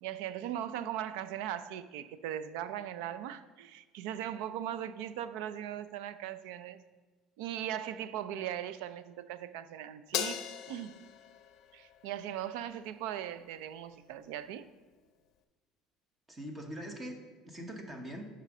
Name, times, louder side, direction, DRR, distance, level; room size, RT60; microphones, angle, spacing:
voice 1, 0.0-6.8 7.4-11.0 11.7-14.7, right 11 dB, 90° right, 0.4 m, -39 dB
Crash cymbal, 10.1-12.7, left 10 dB, 55° left, 0.5 m, -39 dB
voice 2, 16.3-18.3, equal, 15° right, 0.9 m, -43 dB
6.7 x 5.1 x 6.0 m
cardioid pair, 150°, 0 cm